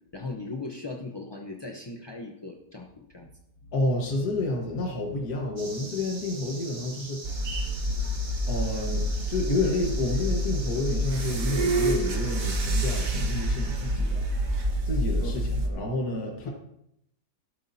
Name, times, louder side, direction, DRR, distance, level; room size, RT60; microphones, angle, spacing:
voice 1, 0.1-3.3 15.2-15.4 16.4-16.5, left 3 dB, 30° left, 1 dB, 0.5 m, -38 dB
voice 2, 3.7-8.2 8.5-14.3 14.8-16.5, left 2 dB, 70° left, 0 dB, 1.9 m, -30 dB
sound 1, 5.6-13.9, right 3 dB, 25° right, 0.6 m, -43 dB
sound 2, 7.2-15.7, right 1 dB, 60° right, 1.7 m, -27 dB
12.5 x 12.0 x 2.7 m, 0.79 s
omnidirectional pair, 1.7 m